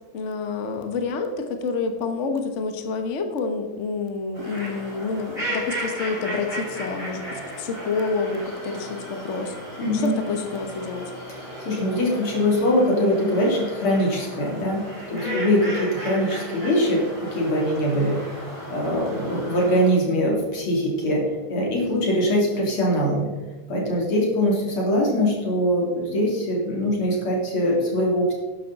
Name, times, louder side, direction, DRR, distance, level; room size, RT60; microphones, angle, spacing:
voice 1, 0.1-11.1 15.1-15.5, left 4 dB, 40° left, 6 dB, 1.2 m, -28 dB
sound 1, 4.3-19.9, equal, 15° right, 4.3 m, -35 dB
voice 2, 9.8-10.1 11.3-14.8 15.1-18.2 18.7-23.3 23.7-28.3, equal, 90° left, -2 dB, 3.8 m, -22 dB
12.0 x 10.5 x 4.1 m, 1.3 s
omnidirectional pair, 2.3 m